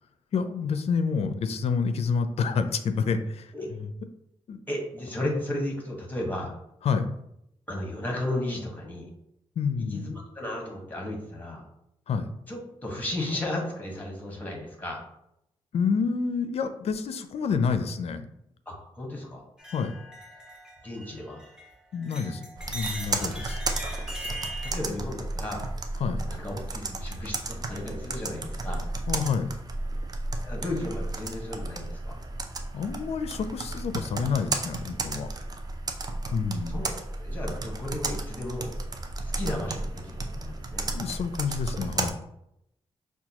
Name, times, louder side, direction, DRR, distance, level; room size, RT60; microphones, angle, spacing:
voice 1, 0.3-3.5 3.8-3.9 4.5-4.6 6.8-7.1 9.6-10.1 12.1-12.3 15.7-18.2 19.7-19.9 21.9-23.6 26.0-26.2 29.1-29.5 32.7-35.3 36.3-36.8 40.9-42.1, left 5 dB, 65° left, 10 dB, 0.4 m, -28 dB
voice 2, 4.7-6.5 7.7-9.1 9.8-11.6 12.5-15.0 18.6-19.4 20.8-21.4 24.4-25.7 26.2-28.9 30.4-32.2 36.7-38.7 39.3-40.9, left 1 dB, 15° left, 0 dB, 1.3 m, -34 dB
sound 1, 19.6-21.7 22.0-24.7, right 1 dB, 5° right, 1.1 m, -39 dB
Computer keyboard, 22.6-42.1, right 2 dB, 35° right, 0.5 m, -33 dB
5.8 x 2.3 x 2.9 m, 0.79 s
cardioid pair, 80°, 11 cm